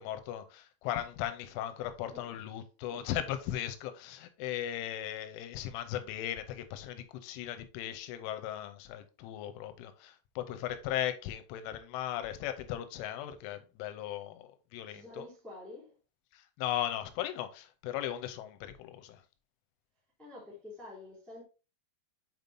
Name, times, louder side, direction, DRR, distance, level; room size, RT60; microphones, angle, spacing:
voice 1, 0.0-15.3 16.3-19.2, left 11 dB, 85° left, 3.1 m, -37 dB
voice 2, 14.9-16.0 20.2-21.4, left 2 dB, ahead, 1.4 m, -48 dB
8.0 x 5.3 x 2.7 m
omnidirectional pair, 5.7 m